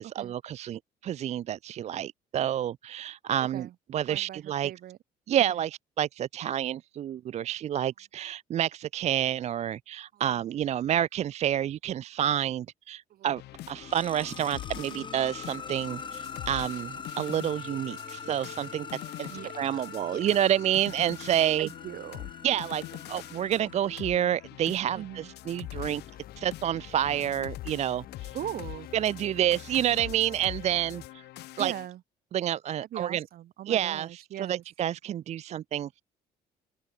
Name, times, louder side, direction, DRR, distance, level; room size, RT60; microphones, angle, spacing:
voice 1, 0.0-3.7 3.9-4.7 5.3-13.4 13.7-18.9 19.2-21.7 22.4-22.8 23.1-26.0 26.4-28.3 28.9-31.2 31.6-31.7 32.3-33.2 33.7-36.0, right 11 dB, 40° right, 0.4 m, -29 dB
voice 2, 4.1-5.0 5.5-5.6 10.1-10.5 13.1-13.3 19.3-20.2 21.6-22.3 25.0-25.3 28.3-28.9 31.6-32.0 32.9-34.6, right 12 dB, 60° right, 1.4 m, -40 dB
sound 1, 13.4-31.9, left 16 dB, 75° left, 1.6 m, -44 dB
sound 2, 13.5-24.3, left 5 dB, 30° left, 2.6 m, -43 dB
sound 3, 25.7-31.1, left 11 dB, 60° left, 7.1 m, -48 dB
open air
cardioid pair, 110°, 17 cm